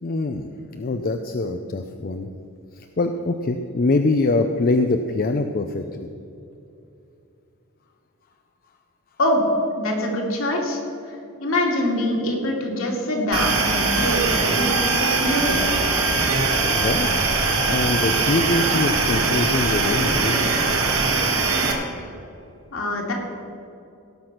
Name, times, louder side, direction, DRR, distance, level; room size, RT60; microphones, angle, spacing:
voice 1, 0.0-2.3 2.8-6.1 16.7-17.1 17.7-20.5, left 2 dB, 45° left, 6 dB, 0.5 m, -24 dB
voice 2, 9.8-10.8 11.1-15.7 22.7-23.1, left 1 dB, 65° left, 0 dB, 2.4 m, -24 dB
sound 1, 13.3-21.7, right 3 dB, 70° right, 1.8 m, -21 dB
17.5 x 6.1 x 5.9 m, 2.7 s
head